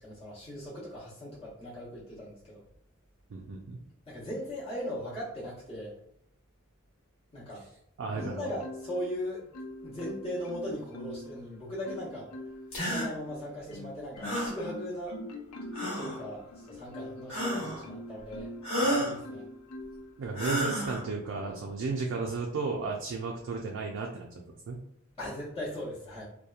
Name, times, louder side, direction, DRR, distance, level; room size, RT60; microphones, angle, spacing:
voice 1, 0.0-2.6 4.1-5.9 7.3-7.7 8.1-9.5 9.8-12.3 12.8-15.2 15.9-18.5 18.8-19.4 25.2-26.2, equal, 30° left, -8 dB, 0.8 m, -38 dB
voice 2, 3.3-3.8 8.0-8.5 20.2-24.3 24.7-24.8, right 4 dB, 60° right, 0 dB, 0.4 m, -34 dB
Marimba xylophone, 8.2-9.1 9.5-11.4 11.8-12.7 13.3-18.7 19.2-20.1 20.7-20.9, left 1 dB, 85° left, 0.4 m, -43 dB
sound 1, 12.7-13.1 14.2-14.6 15.7-16.2 17.3-17.8 18.6-19.2 20.3-21.0, equal, 70° left, 1.3 m, -30 dB
2.8 x 2.1 x 2.3 m, 0.75 s
head